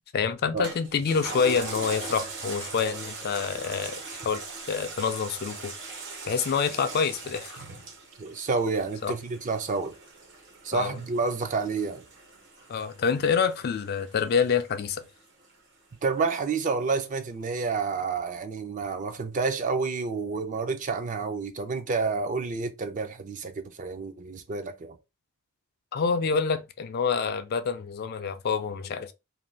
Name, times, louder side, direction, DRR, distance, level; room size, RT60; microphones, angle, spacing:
voice 1, 0.1-4.4 4.7-5.7 6.3-7.5 9.0-9.1 10.7-11.0 12.7-15.1 25.9-29.1, left 6 dB, 45° left, 0.3 m, -27 dB
Toilet flush, 0.6-15.5 15.9-16.0, right 3 dB, 60° right, 0.8 m, -41 dB
voice 2, 8.2-9.9 10.6-12.0 16.0-25.0, right 4 dB, 35° right, 0.4 m, -29 dB
2.6 x 2.2 x 3.2 m
head